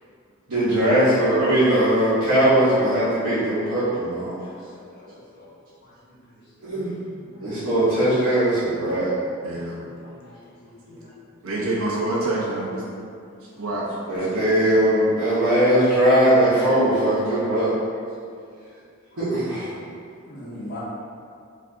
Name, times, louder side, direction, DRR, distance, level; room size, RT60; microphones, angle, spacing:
voice 1, 0.5-4.4 6.6-6.9 7.4-9.1 14.1-17.7 19.2-19.7, right 1 dB, 85° right, -14 dB, 1.1 m, -20 dB
voice 2, 4.7-5.5 6.7-6.8 10.0-10.3 10.9-11.0 20.3-20.8, left 1 dB, 50° left, -8 dB, 0.7 m, -40 dB
voice 3, 9.4-9.7 10.9-11.0 11.4-12.8 13.6-14.3, right 2 dB, 65° right, -6 dB, 0.8 m, -27 dB
4.6 x 2.6 x 2.6 m, 2.3 s
head